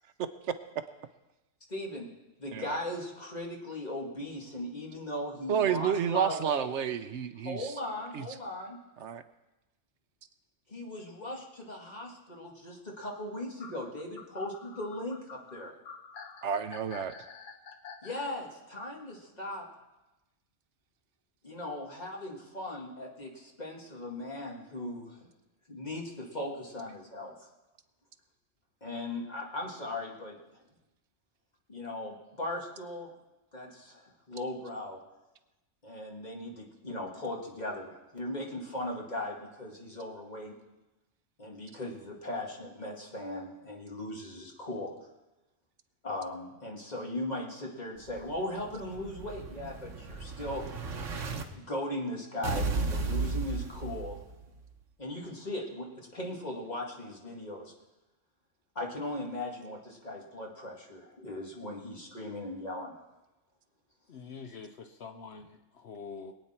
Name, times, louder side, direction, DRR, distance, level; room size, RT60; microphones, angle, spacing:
voice 1, 1.7-2.1 2.4-6.7 7.4-8.8 10.7-15.7 18.0-19.6 21.4-25.3 25.7-27.5 28.8-30.4 31.7-33.1 33.5-35.0 35.8-40.5 41.4-44.9 46.0-50.6 51.5-54.2 55.0-57.7 58.8-62.9 64.4-64.6, left 1 dB, 35° left, -1 dB, 2.2 m, -38 dB
voice 2, 5.5-7.7 8.1-8.2 9.0-9.2 16.4-17.1, right 8 dB, 70° right, 11 dB, 1.0 m, -30 dB
sound 1, 13.6-18.3, left 6 dB, 85° left, 1.3 m, -48 dB
Explosion, 48.1-51.4 52.4-54.4, right 3 dB, 85° right, 1.4 m, -34 dB
voice 3, 64.1-66.3, left 5 dB, 65° left, 7 dB, 1.0 m, -45 dB
22.0 x 9.0 x 4.4 m, 1.0 s
omnidirectional pair, 1.3 m